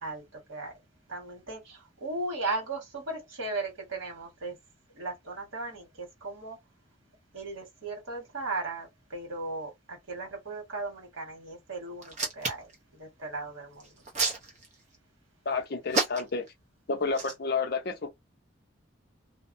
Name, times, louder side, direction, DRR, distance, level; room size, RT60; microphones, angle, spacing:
voice 1, 0.0-0.8 1.1-4.5 4.9-6.6 7.3-14.0, right 3 dB, 75° right, 1.5 m, -37 dB
Hands, 12.0-12.7 13.8-15.0 15.9-16.5 17.1-17.3, right 3 dB, 35° right, 0.7 m, -29 dB
voice 2, 15.5-16.5 16.9-18.1, left 4 dB, 50° left, 0.5 m, -30 dB
2.6 x 2.1 x 2.6 m
head